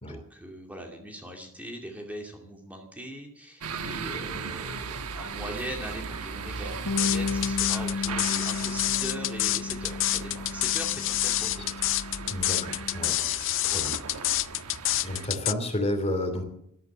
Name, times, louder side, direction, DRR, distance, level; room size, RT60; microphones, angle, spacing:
voice 1, 0.1-11.6 13.6-13.9, equal, 5° right, 1 dB, 2.5 m, -40 dB
sound 1, 3.6-15.3, right 5 dB, 85° right, 1.2 m, -38 dB
Bass guitar, 6.9-13.1, left 4 dB, 80° left, 1.1 m, -34 dB
sound 2, 7.0-15.5, left 16 dB, 60° left, 0.5 m, -27 dB
voice 2, 12.3-13.2 13.6-13.9 15.0-16.5, left 1 dB, 30° left, 6 dB, 2.9 m, -31 dB
13.5 x 12.5 x 7.6 m, 0.75 s
head